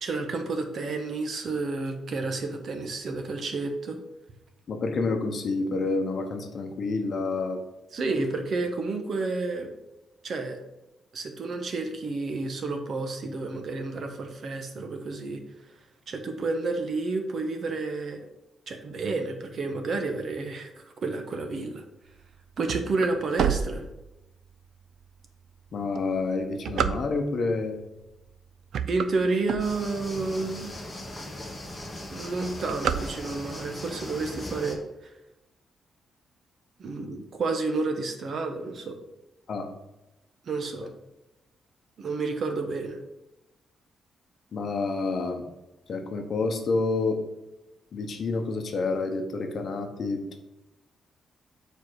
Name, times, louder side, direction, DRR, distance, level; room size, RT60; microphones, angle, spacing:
voice 1, 0.0-4.0 7.9-9.7 10.2-10.6 11.1-15.4 15.7-15.8 16.1-18.2 18.7-21.8 22.6-23.8 28.9-30.7 32.1-35.1 36.8-39.0 40.4-40.9 42.0-43.0, right 3 dB, 45° right, 5 dB, 1.0 m, -30 dB
voice 2, 4.7-7.6 25.7-27.8 39.5-39.7 40.8-40.9 44.5-45.4 45.9-47.2 47.9-50.4, left 3 dB, 45° left, 5 dB, 0.9 m, -28 dB
sound 1, 22.2-24.5 25.0-25.1 25.8-27.5 28.1-28.3 28.6-30.2 30.7-30.8 31.0-31.1 31.4-31.7 32.0-33.6, right 8 dB, 70° right, 0.4 m, -29 dB
sound 2, 29.6-34.8, left 1 dB, 10° left, 1.2 m, -39 dB
7.4 x 4.5 x 4.7 m, 0.97 s
wide cardioid pair, 160°, 0 cm